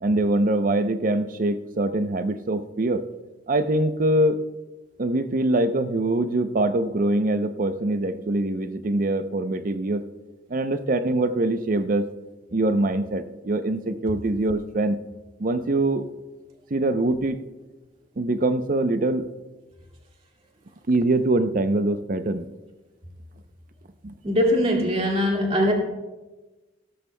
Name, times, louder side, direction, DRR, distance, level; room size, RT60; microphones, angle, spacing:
voice 1, 0.0-3.1 3.5-4.4 5.0-10.0 10.5-12.1 12.5-15.0 15.4-16.0 16.7-17.4 18.2-19.3 20.9-22.5 24.0-24.1, right 2 dB, 50° right, 11 dB, 0.6 m, -23 dB
voice 2, 24.2-25.7, equal, 35° right, 0 dB, 2.2 m, -21 dB
17.5 x 13.5 x 2.2 m, 1.2 s
head